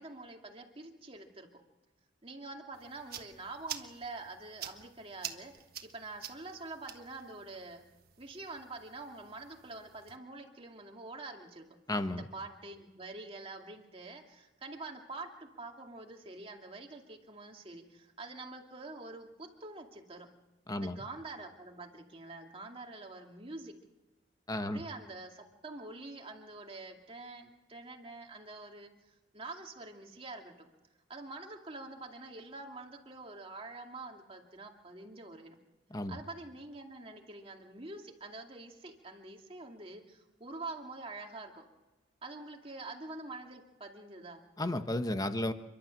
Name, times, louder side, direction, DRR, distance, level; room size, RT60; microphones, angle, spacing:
voice 1, 0.0-1.6 2.2-7.8 8.2-11.6 12.1-20.3 20.7-23.7 24.6-30.7 31.1-35.6 36.1-41.6 42.2-44.4, right 2 dB, 30° right, 2 dB, 2.5 m, -46 dB
sound 1, 2.7-10.2, right 10 dB, 50° right, 1.4 m, -48 dB
voice 2, 11.9-12.3 20.7-21.0 24.5-24.8 35.9-36.2 44.6-45.5, left 1 dB, 20° left, 9 dB, 1.1 m, -33 dB
29.5 x 12.0 x 7.7 m, 1.1 s
head